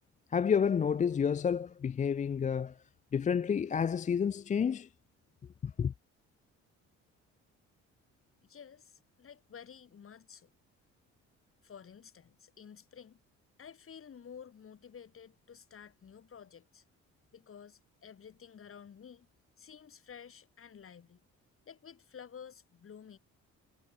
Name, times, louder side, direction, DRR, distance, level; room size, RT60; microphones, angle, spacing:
voice 1, 0.3-2.8 3.1-4.9 5.6-5.9, left 7 dB, 25° left, 0.4 m, -30 dB
voice 2, 8.4-10.5 11.6-13.2 13.6-16.8 17.3-19.3 19.6-21.2 21.7-23.2, left 7 dB, 45° left, 2.6 m, -52 dB
cardioid pair, 90°, 30 cm